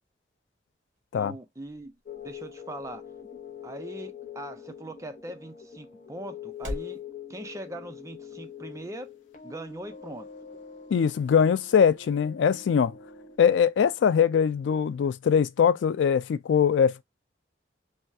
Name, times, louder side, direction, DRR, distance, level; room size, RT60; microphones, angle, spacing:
sound 1, 0.7-7.0, equal, 45° right, 1.1 m, -46 dB
voice 1, 1.1-3.0 3.6-7.0 7.3-9.1 9.4-10.3, right 1 dB, 15° right, 0.4 m, -41 dB
sound 2, 2.0-13.4, left 8 dB, 40° left, 0.7 m, -44 dB
voice 2, 10.9-12.9 13.4-17.0, left 7 dB, 85° left, 0.3 m, -22 dB
3.3 x 2.3 x 2.6 m
head